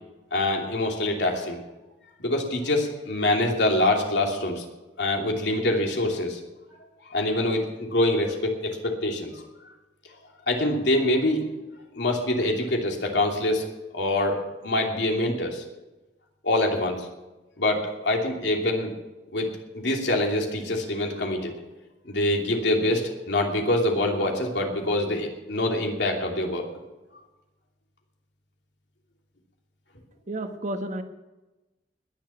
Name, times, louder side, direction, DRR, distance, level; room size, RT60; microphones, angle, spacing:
voice 1, 0.3-1.6 2.2-4.6 5.0-6.4 7.0-9.4 10.5-11.4 11.9-13.6 13.9-15.6 16.4-17.1 17.6-18.9 19.3-19.5 19.7-21.5 22.0-26.6, left 1 dB, 75° left, 1 dB, 2.9 m, -25 dB
voice 2, 30.3-31.0, right 1 dB, 45° right, 7 dB, 1.3 m, -31 dB
20.5 x 7.4 x 7.1 m, 1.1 s
head